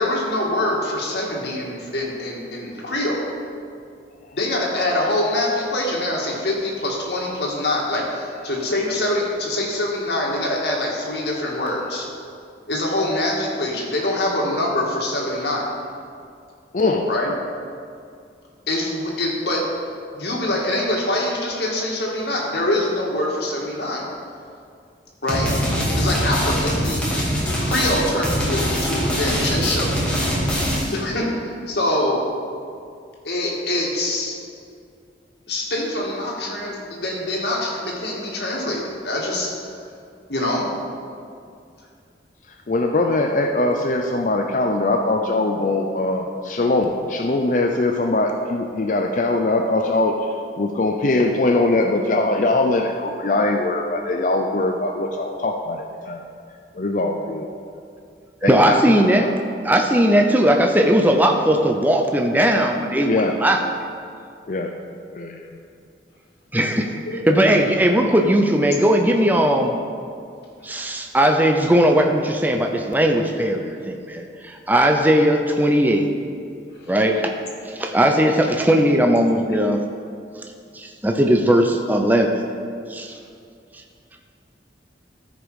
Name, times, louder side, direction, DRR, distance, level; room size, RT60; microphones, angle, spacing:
voice 1, 0.0-3.2 4.3-12.1 12.7-15.7 17.1-17.3 18.7-19.6 20.1-24.0 25.2-25.5 26.0-27.1 27.6-29.9 30.9-32.3 33.2-34.4 35.5-39.5 40.3-40.7 67.1-67.4 70.8-70.9 76.8-76.9, left 1 dB, 65° left, -2 dB, 1.9 m, -24 dB
voice 2, 16.7-17.1 42.7-50.1 50.6-56.2 56.8-57.5 58.4-58.8 59.2-59.3 63.1-63.3 64.5-64.7 65.1-65.5, left 2 dB, 45° left, 3 dB, 0.5 m, -21 dB
sound 1, 25.3-31.0, equal, 5° left, 2.0 m, -23 dB
voice 3, 58.4-59.3 59.6-63.6 66.5-69.8 70.6-76.1 76.9-77.3 77.7-79.8 80.7-82.3 82.9-83.1, right 1 dB, 10° right, 3 dB, 0.5 m, -18 dB
13.5 x 5.2 x 4.8 m, 2.4 s
head